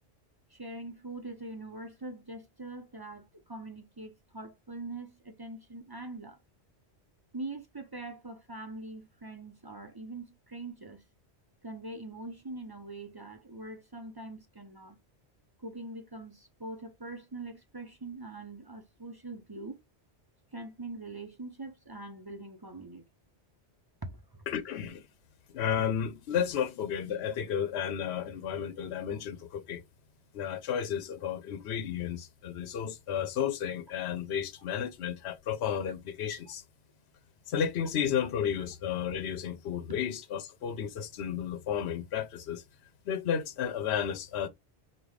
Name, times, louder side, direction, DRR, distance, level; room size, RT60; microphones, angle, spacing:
voice 1, 0.5-6.4 7.3-11.0 11.6-15.0 15.6-19.8 20.5-23.0 24.0-24.5 26.6-26.7 27.7-27.9, right 2 dB, 25° right, 0.5 m, -43 dB
voice 2, 24.5-25.1 25.5-29.8 30.3-36.6 37.5-42.6 43.1-44.5, left 8 dB, 75° left, 0.9 m, -32 dB
5.4 x 2.3 x 3.2 m
omnidirectional pair, 1.1 m